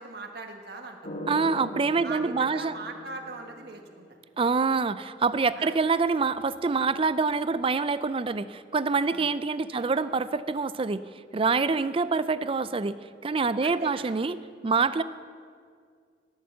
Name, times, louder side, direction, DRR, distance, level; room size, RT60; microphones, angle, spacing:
voice 1, 0.0-1.1 2.0-4.2 5.5-5.7 9.1-9.4 9.7-9.8 13.6-14.1, right 3 dB, 65° right, 3 dB, 1.4 m, -40 dB
sound 1, 1.0-4.1 5.9-7.6, equal, 45° left, 1.2 m, -42 dB
voice 2, 1.3-2.7 4.4-11.0 11.3-13.0 13.2-14.4 14.6-15.0, right 4 dB, 30° right, 14 dB, 0.5 m, -26 dB
18.5 x 7.3 x 7.5 m, 2.1 s
head